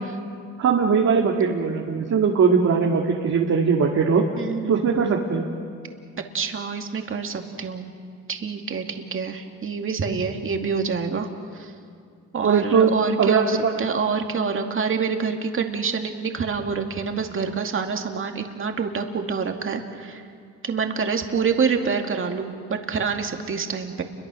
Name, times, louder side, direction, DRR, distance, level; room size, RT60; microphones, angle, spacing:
voice 1, 0.6-4.2 4.7-5.5 12.4-13.7, right 5 dB, 60° right, -1 dB, 2.2 m, -20 dB
voice 2, 4.4-5.0 6.2-7.9 8.3-11.3 11.5-11.7 12.3-20.2 20.6-24.0, right 5 dB, 45° right, 4 dB, 2.4 m, -27 dB
30.0 x 23.0 x 6.4 m, 2.2 s
cardioid pair, 90°, 30 cm